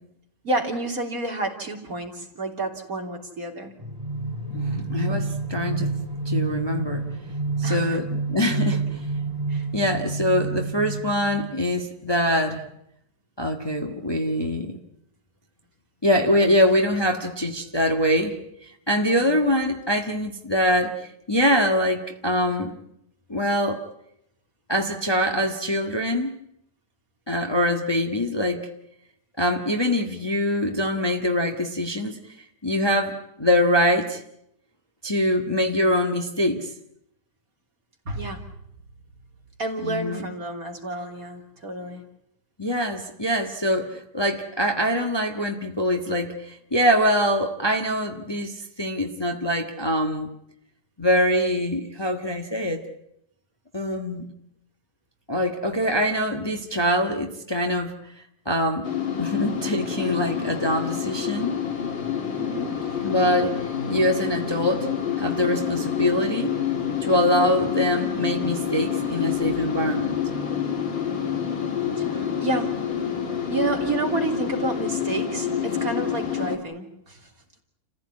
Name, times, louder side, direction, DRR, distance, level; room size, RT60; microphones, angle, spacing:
voice 1, 0.4-3.7 5.1-5.2 7.6-8.0 8.7-8.8 9.5-9.7 19.2-19.4 38.1-38.5 39.6-42.0 62.4-62.8 72.0-72.8 73.5-77.3, right 2 dB, 50° right, 1 dB, 3.7 m, -30 dB
sound 1, 3.8-11.7, right 3 dB, 10° right, 5.7 m, -29 dB
voice 2, 4.5-5.9 6.2-7.1 7.6-9.0 9.7-12.7 13.4-14.8 16.0-22.7 23.3-23.8 24.7-26.4 27.3-28.7 29.4-34.2 35.0-36.7 39.8-40.3 42.6-50.3 51.0-52.9 53.7-54.3 55.3-57.9 58.4-58.9 59.2-61.6 63.0-64.9 65.2-66.6 67.0-70.2, equal, 15° left, 3 dB, 1.6 m, -24 dB
sound 2, 58.8-76.6, left 8 dB, 85° left, 2.9 m, -28 dB
29.5 x 15.5 x 9.8 m, 0.79 s
omnidirectional pair, 2.0 m